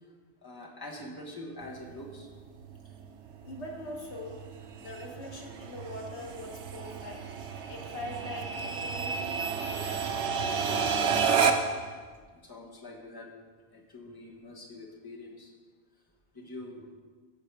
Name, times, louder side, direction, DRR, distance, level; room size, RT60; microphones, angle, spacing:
voice 1, 0.4-2.3 12.3-13.3 13.7-15.5 16.3-16.9, left 1 dB, 20° left, -2 dB, 1.5 m, -44 dB
sound 1, 1.6-11.9, right 5 dB, 85° right, 1.0 m, -32 dB
voice 2, 3.4-4.4 4.8-7.3 7.7-10.2, left 1 dB, 80° left, 0 dB, 1.7 m, -42 dB
16.5 x 5.6 x 4.7 m, 1.5 s
omnidirectional pair, 1.1 m